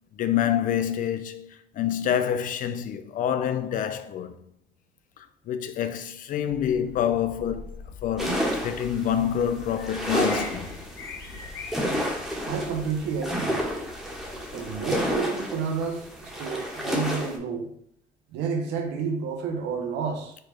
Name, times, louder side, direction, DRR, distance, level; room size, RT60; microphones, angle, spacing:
voice 1, 0.2-1.5 1.7-4.3 5.2-10.7, left 9 dB, 55° left, 0.4 m, -27 dB
sound 1, 6.5-15.2, left 5 dB, 80° left, 0.9 m, -43 dB
sound 2, 8.2-17.4, equal, ahead, 1.0 m, -30 dB
voice 2, 12.4-13.6 14.5-17.7 18.3-20.4, right 5 dB, 85° right, 0.8 m, -30 dB
4.5 x 2.3 x 4.7 m
cardioid pair, 110°, 17 cm